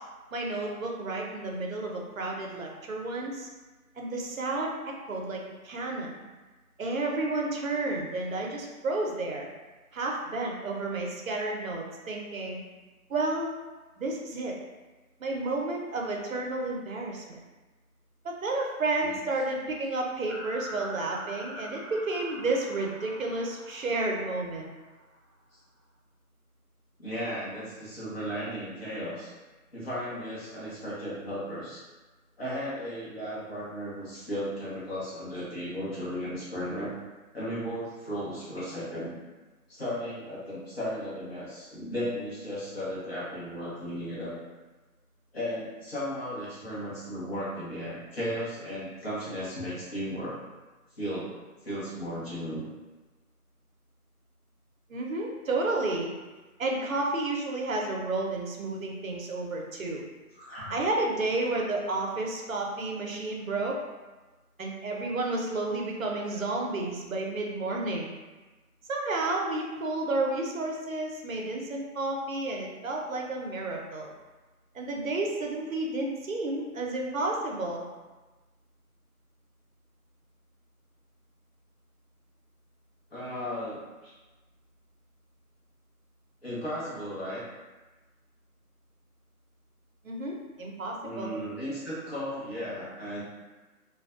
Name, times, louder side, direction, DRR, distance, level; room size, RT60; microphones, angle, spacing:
voice 1, 0.3-3.5 4.0-4.8 5.1-6.1 6.8-9.5 9.9-12.6 13.1-13.5 14.0-14.5 15.2-17.4 18.2-24.7 54.9-56.1 56.6-60.0 60.7-63.8 64.6-68.1 68.9-74.1 74.7-77.9 90.0-91.3, right 2 dB, 60° right, 0 dB, 0.6 m, -31 dB
sound 1, 20.3-25.0, equal, 10° left, 1.0 m, -44 dB
voice 2, 27.0-29.3 29.7-31.8 32.4-36.9 37.3-39.1 39.7-44.3 45.3-50.4 51.0-51.4 51.6-52.6 60.4-60.8 83.1-84.1 86.4-87.4 91.0-93.2, equal, 40° left, -8 dB, 0.9 m, -35 dB
2.5 x 2.2 x 2.4 m, 1.2 s
figure-of-eight pair, 165°, 45 cm